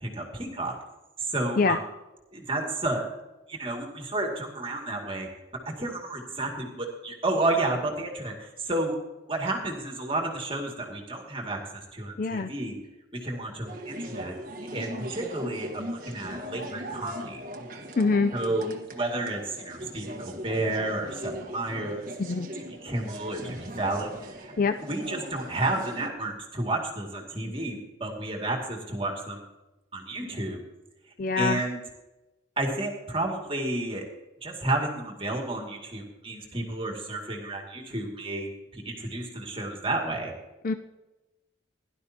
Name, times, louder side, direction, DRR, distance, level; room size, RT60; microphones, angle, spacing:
voice 1, 0.0-0.7 1.3-1.8 2.3-3.0 3.5-5.3 5.7-9.0 9.3-12.7 13.1-14.4 14.7-17.4 18.3-18.7 18.9-22.1 22.6-24.5 24.8-29.5 29.9-30.6 31.4-31.8 32.6-34.0 34.4-40.3, right 2 dB, 30° right, 1 dB, 2.2 m, -31 dB
voice 2, 12.2-12.5 18.0-18.3 22.2-22.5 24.6-24.7 31.2-31.6 40.6-40.7, left 4 dB, 45° left, 9 dB, 0.4 m, -24 dB
sound 1, 13.6-26.1, equal, 45° right, 1.3 m, -39 dB
17.5 x 11.5 x 2.8 m, 1.1 s
head